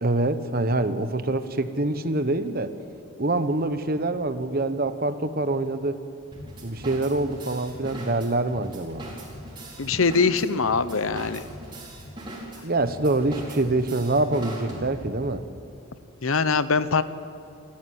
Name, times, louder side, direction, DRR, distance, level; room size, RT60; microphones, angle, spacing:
voice 1, 0.0-2.7 3.2-6.0 6.6-9.0 12.6-15.4, right 2 dB, 45° right, 10 dB, 1.1 m, -25 dB
sound 1, 6.3-15.2, right 1 dB, 20° right, 4.8 m, -40 dB
voice 2, 9.8-11.4 16.2-17.0, left 4 dB, 75° left, 13 dB, 0.9 m, -22 dB
28.5 x 13.5 x 9.5 m, 2.6 s
head